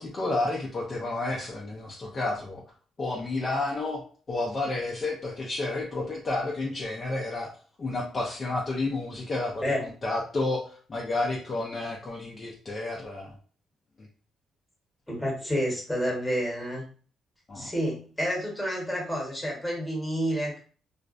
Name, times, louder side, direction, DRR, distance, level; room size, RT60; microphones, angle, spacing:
voice 1, 0.0-2.6 3.0-4.0 4.3-7.5 7.8-13.4 14.0-14.1 17.5-17.7, left 2 dB, 35° left, -3 dB, 0.5 m, -31 dB
voice 2, 15.1-16.8 17.5-20.6, equal, 5° left, -3 dB, 1.1 m, -29 dB
2.4 x 2.1 x 2.5 m, 0.41 s
cardioid pair, 90°, 0 cm